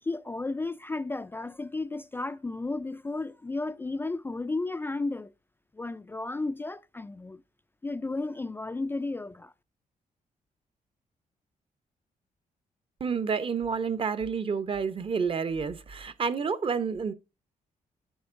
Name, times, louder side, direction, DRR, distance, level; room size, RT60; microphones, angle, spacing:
voice 1, 0.0-5.3 5.7-7.4 7.8-9.5, left 3 dB, 15° left, 0.3 m, -33 dB
voice 2, 13.0-17.1, right 5 dB, 40° right, 0.7 m, -29 dB
11.0 x 7.7 x 2.5 m
cardioid pair, 110°, 14 cm